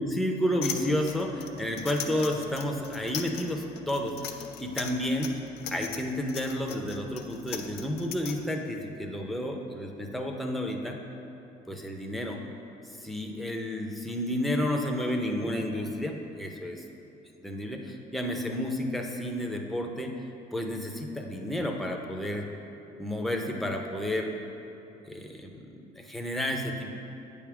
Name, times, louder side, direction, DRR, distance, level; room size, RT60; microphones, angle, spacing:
voice 1, 0.0-5.3 5.7-11.0 11.7-12.4 13.0-16.8 17.4-20.1 20.5-22.5 23.0-24.3 25.1-26.9, left 1 dB, ahead, 2 dB, 0.6 m, -31 dB
sound 1, 0.6-8.3, left 9 dB, 70° left, 0.6 m, -38 dB
8.0 x 3.6 x 5.9 m, 2.9 s
cardioid pair, 110°, 17 cm